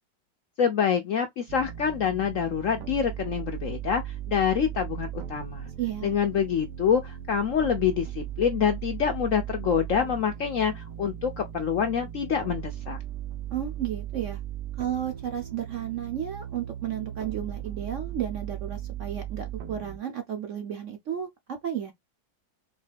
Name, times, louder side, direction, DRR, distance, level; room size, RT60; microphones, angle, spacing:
voice 1, 0.6-5.7 6.0-13.0, left 7 dB, 65° left, 0.8 m, -26 dB
sound 1, 1.5-20.0, right 11 dB, 70° right, 1.2 m, -37 dB
voice 2, 5.8-6.2 13.5-14.4 14.8-21.9, right 10 dB, 55° right, 0.9 m, -33 dB
4.0 x 3.2 x 3.3 m
omnidirectional pair, 2.0 m